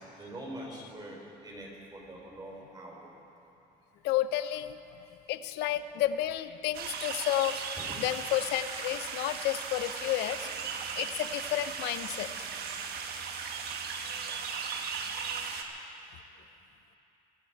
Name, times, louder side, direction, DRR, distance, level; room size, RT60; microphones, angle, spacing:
voice 1, 0.0-3.1 7.8-8.0, right 1 dB, 25° right, -2 dB, 4.3 m, -44 dB
voice 2, 4.0-4.8 5.3-7.6 8.0-10.5 11.0-12.3, left 13 dB, 85° left, 13 dB, 0.6 m, -31 dB
sound 1, 6.7-15.6, right 6 dB, 70° right, 1.3 m, -37 dB
24.0 x 11.5 x 4.6 m, 2.8 s
cardioid pair, 110°, 17 cm